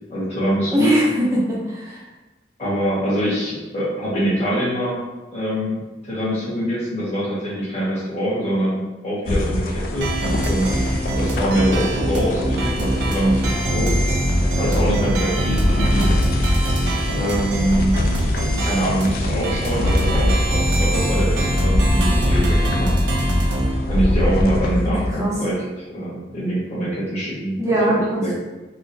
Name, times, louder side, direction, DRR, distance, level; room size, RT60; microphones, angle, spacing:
voice 1, 0.1-0.9 2.6-5.0 5.3-10.1 10.4-10.7 11.1-13.9 14.6-16.2 17.1-17.9 18.6-22.9 23.9-25.6 25.9-27.6 27.8-28.3, right 1 dB, 35° left, -10 dB, 1.4 m, -24 dB
voice 2, 0.7-2.0 25.1-25.4 27.6-28.3, right 1 dB, 15° right, -5 dB, 0.5 m, -21 dB
sound 1, 9.2-25.2, left 1 dB, 50° left, 0.3 m, -25 dB
sound 2, 10.0-23.7, equal, 70° right, 0.6 m, -22 dB
3.7 x 2.1 x 2.6 m, 1.1 s
head